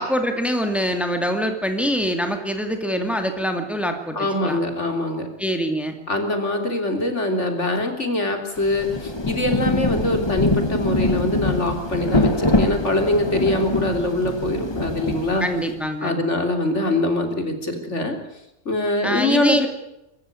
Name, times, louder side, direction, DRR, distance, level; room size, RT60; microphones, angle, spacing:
voice 1, 0.0-4.6 5.4-5.9 15.4-16.1 19.0-19.7, equal, ahead, 6 dB, 2.4 m, -24 dB
voice 2, 4.1-5.3 6.1-15.4 16.0-18.2 18.7-19.7, left 1 dB, 75° left, 5 dB, 3.8 m, -23 dB
Rain, 8.6-15.8, left 2 dB, 20° left, 1.5 m, -24 dB
24.5 x 14.5 x 9.8 m, 0.85 s
omnidirectional pair, 1.2 m